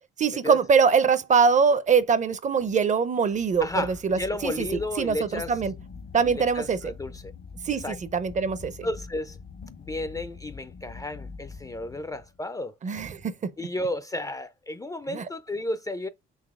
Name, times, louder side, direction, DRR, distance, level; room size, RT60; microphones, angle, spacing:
voice 1, 0.2-5.7 6.1-6.8 7.6-7.8 8.1-8.9 12.8-13.5 15.1-15.2, right 5 dB, 40° right, 0.5 m, -23 dB
sound 1, 3.3-12.4, left 5 dB, 55° left, 0.6 m, -44 dB
voice 2, 3.6-5.6 6.2-7.3 7.7-8.0 8.8-9.4 9.8-12.7 13.6-16.1, left 1 dB, 15° left, 0.3 m, -33 dB
4.0 x 2.8 x 3.5 m
cardioid pair, 90°, 20 cm